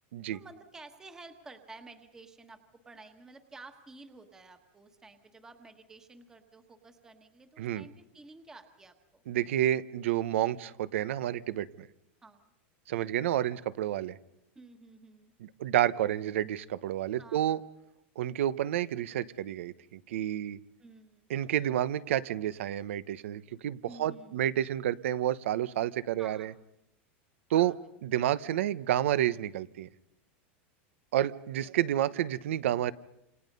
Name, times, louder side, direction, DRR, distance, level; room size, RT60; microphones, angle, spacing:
voice 1, 0.3-2.6 2.8-9.2 12.2-12.5 14.5-15.3 17.2-17.6 20.8-21.3 23.9-24.4 26.2-26.5 27.5-27.7, right 3 dB, 10° right, 7 dB, 1.3 m, -52 dB
voice 2, 9.3-11.9 12.9-14.2 15.6-17.6 18.2-20.6 21.3-26.5 27.5-27.7 28.0-29.9 31.1-32.9, right 12 dB, 90° right, 16 dB, 1.0 m, -30 dB
28.0 x 27.5 x 5.5 m, 0.80 s
supercardioid pair, 175°, 7 cm